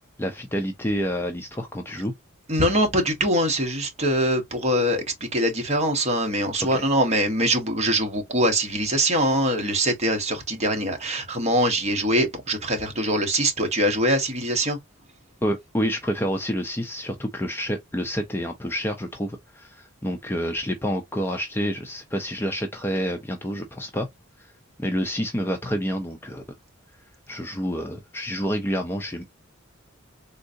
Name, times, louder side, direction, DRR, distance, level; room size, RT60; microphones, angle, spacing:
voice 1, 0.2-2.1 6.6-6.8 15.4-24.1 24.4-24.5 24.8-26.4 27.3-29.2, equal, 10° left, 0.4 m, -28 dB
voice 2, 2.5-5.0 5.3-14.8, right 1 dB, 30° right, 1.0 m, -23 dB
3.6 x 2.6 x 2.5 m
head